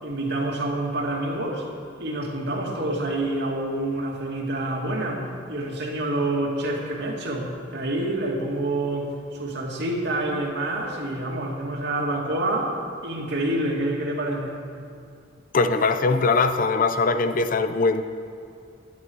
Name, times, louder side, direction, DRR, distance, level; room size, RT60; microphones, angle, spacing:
voice 1, 0.0-1.6 2.0-5.2 5.5-12.7 13.0-14.6, right 1 dB, 65° right, -1 dB, 2.4 m, -27 dB
voice 2, 15.5-18.0, left 3 dB, 45° left, 9 dB, 0.6 m, -21 dB
17.0 x 11.5 x 4.7 m, 2.5 s
head